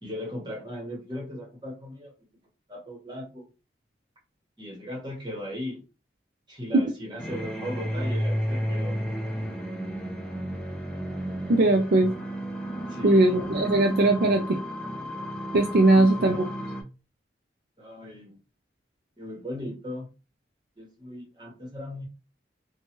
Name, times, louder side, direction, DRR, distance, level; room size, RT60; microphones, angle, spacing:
voice 1, 0.0-2.1 2.7-3.5 4.6-5.8 6.5-9.0 12.9-13.4 15.9-16.3 17.8-18.4 19.2-20.1 20.8-22.1, left 1 dB, 25° right, -1 dB, 1.1 m, -37 dB
sound 1, 7.2-16.8, equal, 5° left, 0.4 m, -32 dB
voice 2, 11.5-12.1 13.0-14.6 15.5-16.4, right 2 dB, 60° right, 2 dB, 0.4 m, -20 dB
3.0 x 2.3 x 2.9 m, 0.31 s
head